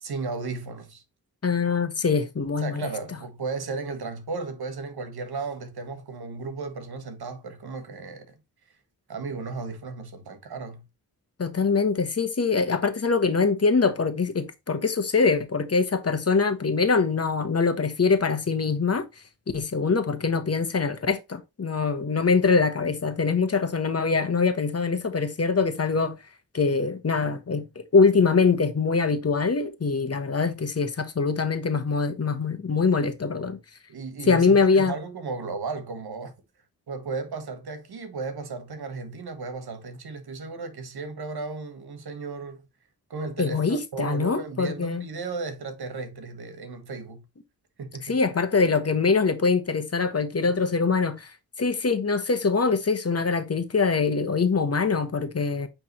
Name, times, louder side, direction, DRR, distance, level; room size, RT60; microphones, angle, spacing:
voice 1, 0.0-1.0 2.6-8.4 9.1-10.8 33.9-36.3 36.9-42.6 43.1-47.2 47.8-48.2 50.4-50.7, right 4 dB, 85° right, 1.6 m, -35 dB
voice 2, 1.4-2.9 11.4-19.0 19.5-26.2 26.5-33.6 34.3-34.9 43.4-45.0 48.0-51.3 51.6-55.7, left 4 dB, 40° left, 1.2 m, -23 dB
8.7 x 3.5 x 3.1 m
wide cardioid pair, 90°, 37 cm